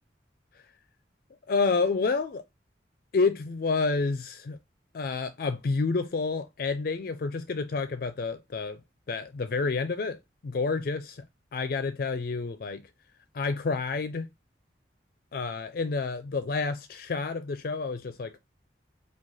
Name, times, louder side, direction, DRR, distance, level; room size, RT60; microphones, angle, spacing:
voice 1, 1.5-2.4 3.1-4.6 4.9-8.8 9.1-10.2 10.4-11.2 11.5-12.8 13.3-14.3 15.3-18.4, left 4 dB, 50° left, 0.4 m, -29 dB
4.9 x 2.2 x 3.8 m
head